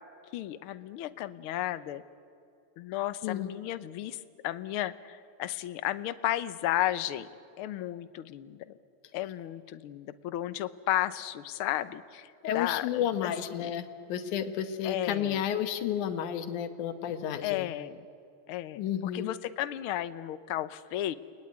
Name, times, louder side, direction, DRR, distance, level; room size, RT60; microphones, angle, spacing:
voice 1, 0.3-2.0 2.8-7.3 7.6-8.8 9.1-13.8 14.8-15.4 17.4-18.0 18.5-21.2, left 13 dB, 70° left, 13 dB, 1.4 m, -34 dB
voice 2, 12.4-17.7 18.8-19.3, left 9 dB, 90° left, 8 dB, 2.6 m, -31 dB
30.0 x 20.5 x 9.6 m, 2.5 s
omnidirectional pair, 3.4 m